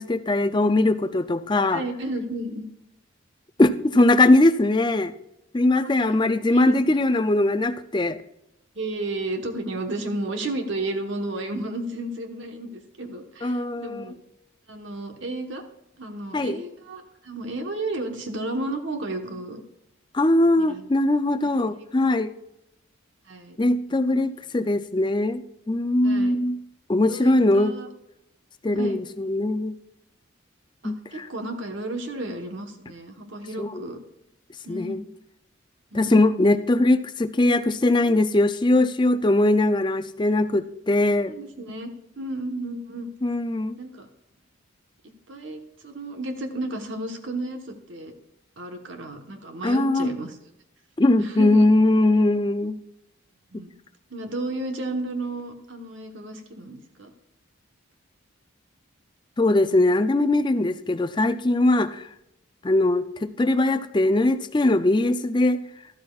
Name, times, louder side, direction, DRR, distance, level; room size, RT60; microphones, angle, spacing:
voice 1, 0.0-1.8 3.6-5.1 5.5-8.2 13.4-14.1 16.3-16.6 20.1-22.3 23.6-25.4 25.7-26.6 26.9-27.7 28.6-29.7 30.8-31.3 33.6-33.8 34.7-35.0 35.9-41.3 43.2-43.8 49.6-50.1 51.0-52.8 59.4-62.0 62.6-65.6, left 2 dB, 20° left, 11 dB, 0.4 m, -21 dB
voice 2, 1.7-2.6 5.8-6.2 6.5-7.0 8.7-14.2 14.7-15.6 16.0-19.6 20.5-20.8 23.3-23.6 23.9-24.2 26.0-26.4 27.1-27.9 28.7-29.0 30.8-34.0 34.6-35.0 35.9-36.3 41.3-41.9 42.2-43.1 43.8-44.1 45.3-48.1 48.6-50.4 51.2-51.7 53.5-53.7 54.1-57.1, right 2 dB, 65° right, 4 dB, 1.2 m, -33 dB
13.0 x 12.5 x 2.4 m, 0.84 s
head